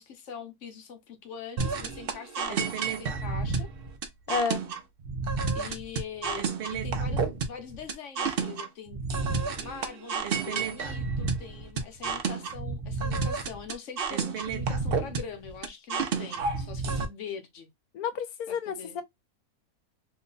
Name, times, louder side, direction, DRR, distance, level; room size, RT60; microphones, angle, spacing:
voice 1, 0.0-3.7 5.5-17.7 18.5-19.0, left 7 dB, 60° left, 1.0 m, -43 dB
sound 1, 1.6-17.0, right 4 dB, 55° right, 0.6 m, -30 dB
voice 2, 4.3-4.6 17.9-19.0, left 5 dB, 80° left, 1.1 m, -30 dB
3.0 x 2.1 x 3.8 m
omnidirectional pair, 1.6 m